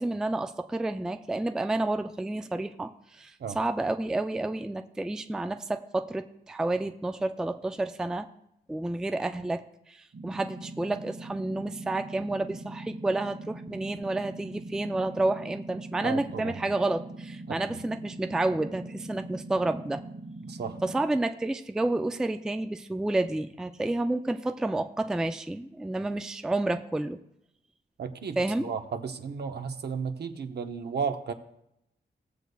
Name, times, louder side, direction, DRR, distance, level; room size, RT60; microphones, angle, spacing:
voice 1, 0.0-8.3 8.7-20.0 20.8-27.2 28.4-28.7, right 2 dB, 5° right, 8 dB, 0.3 m, -30 dB
sound 1, 10.1-21.1, right 2 dB, 85° right, 1.4 m, -42 dB
voice 2, 16.0-16.6 17.5-17.8 20.4-20.8 28.0-31.3, right 6 dB, 70° right, 7 dB, 0.8 m, -34 dB
17.0 x 7.9 x 2.3 m, 0.80 s
wide cardioid pair, 165°, 18 cm